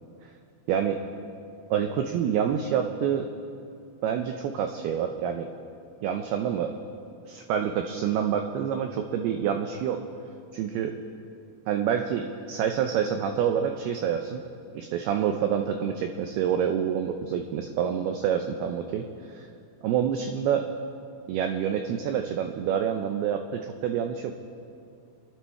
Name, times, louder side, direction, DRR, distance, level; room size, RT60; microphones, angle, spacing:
voice 1, 0.7-1.0 1.7-3.3 4.0-5.5 6.0-6.7 7.3-10.0 10.5-10.9 11.7-14.4 14.7-19.5 19.8-20.7 21.3-24.4, right 8 dB, 90° right, 5 dB, 2.2 m, -27 dB
25.5 x 10.5 x 4.7 m, 2.5 s
omnidirectional pair, 5.4 m